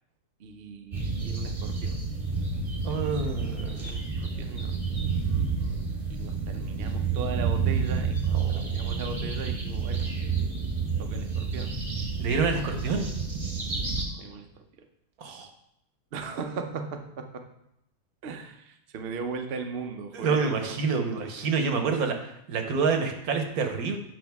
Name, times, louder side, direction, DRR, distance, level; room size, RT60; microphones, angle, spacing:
voice 1, 0.4-2.0 3.8-4.8 6.1-10.0 11.0-11.7 13.9-14.5 16.1-17.4 18.2-21.1, right 5 dB, 55° right, 5 dB, 0.7 m, -38 dB
sound 1, 0.9-14.1, right 5 dB, 25° right, 1.0 m, -29 dB
voice 2, 2.8-3.9 8.3-8.8 12.2-13.1 15.2-15.5 20.1-24.0, right 5 dB, 70° right, 5 dB, 1.4 m, -28 dB
9.0 x 5.5 x 3.5 m, 0.79 s
omnidirectional pair, 1.7 m